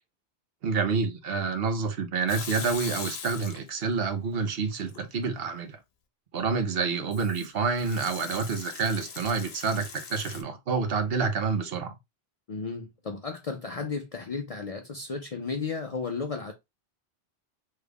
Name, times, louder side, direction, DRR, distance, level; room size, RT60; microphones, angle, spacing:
voice 1, 0.6-5.8 6.3-11.9, right 4 dB, 70° right, 0.9 m, -28 dB
Water tap faucet / Sink (filling or washing) / Liquid, 2.3-4.0 4.3-5.1 7.1-10.4, left 6 dB, 80° left, 0.9 m, -41 dB
voice 2, 12.5-16.5, left 4 dB, 50° left, 0.4 m, -34 dB
3.3 x 2.3 x 3.3 m
omnidirectional pair, 1.1 m